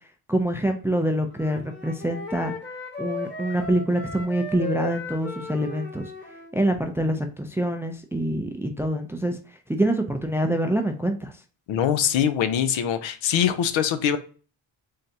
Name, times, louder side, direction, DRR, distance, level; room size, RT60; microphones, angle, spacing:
voice 1, 0.3-2.5 3.0-6.1 6.5-9.4 9.7-11.3, right 1 dB, 5° right, 5 dB, 0.3 m, -25 dB
Wind instrument woodwind instrument, 1.3-6.5, left 3 dB, 25° left, 1.2 m, -36 dB
voice 2, 11.7-14.2, left 9 dB, 75° left, 10 dB, 0.7 m, -23 dB
3.8 x 3.3 x 2.7 m, 0.38 s
cardioid pair, 95°, 46 cm